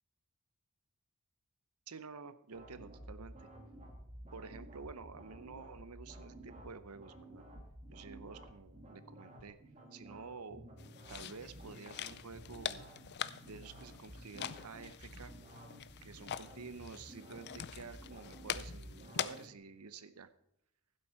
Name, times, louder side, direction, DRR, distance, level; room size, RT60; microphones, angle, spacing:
voice 1, 1.9-3.5 4.3-7.5 7.9-9.6 9.9-10.6 11.1-12.9 13.4-15.3 16.0-20.3, right 4 dB, 90° right, 13 dB, 0.8 m, -50 dB
sound 1, 2.5-19.5, right 1 dB, 30° right, 2.3 m, -53 dB
sound 2, 10.8-19.5, left 9 dB, 50° left, 0.5 m, -44 dB
15.5 x 7.8 x 4.5 m, 0.78 s
head